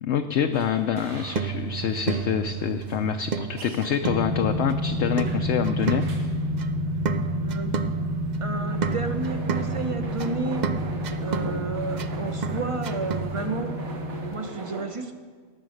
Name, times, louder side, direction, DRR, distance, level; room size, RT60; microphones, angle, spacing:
voice 1, 0.0-6.1, left 8 dB, 65° left, 6 dB, 0.8 m, -26 dB
sound 1, 0.5-14.8, right 3 dB, 85° right, 2.1 m, -41 dB
sound 2, 1.1-13.4, right 6 dB, 65° right, 0.4 m, -33 dB
sound 3, 4.0-14.3, equal, 85° left, 1.7 m, -29 dB
voice 2, 7.3-7.8 8.4-10.6 11.2-13.7 14.3-15.1, right 3 dB, 30° right, 7 dB, 0.8 m, -32 dB
18.0 x 7.0 x 6.5 m, 1.5 s
omnidirectional pair, 1.4 m